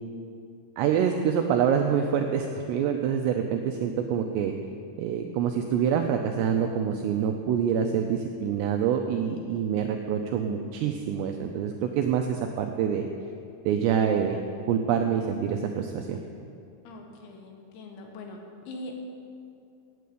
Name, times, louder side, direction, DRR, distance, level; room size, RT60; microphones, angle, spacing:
voice 1, 0.8-4.5 5.0-13.0 13.7-14.4 14.7-16.2, right 8 dB, 85° right, 4 dB, 2.4 m, -26 dB
voice 2, 16.8-18.4 18.7-18.9, left 2 dB, 75° left, 2 dB, 3.3 m, -42 dB
9.3 x 8.4 x 8.4 m, 2.6 s
omnidirectional pair, 5.5 m